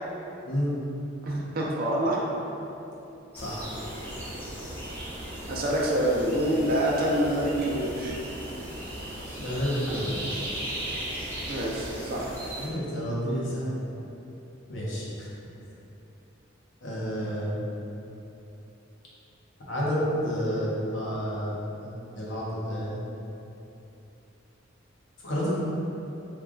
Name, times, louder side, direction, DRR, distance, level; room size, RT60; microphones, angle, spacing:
voice 1, 1.2-2.2 5.5-8.2 11.5-12.3, right 1 dB, 50° right, -3 dB, 0.5 m, -26 dB
sound 1, 3.3-12.7, right 1 dB, 10° left, 0.8 m, -37 dB
voice 2, 9.4-10.4 12.6-13.7 14.7-15.3 16.8-17.6 19.7-21.5 21.8-23.0 25.2-25.5, equal, 70° left, -7 dB, 0.9 m, -30 dB
3.2 x 2.3 x 3.7 m, 2.9 s
head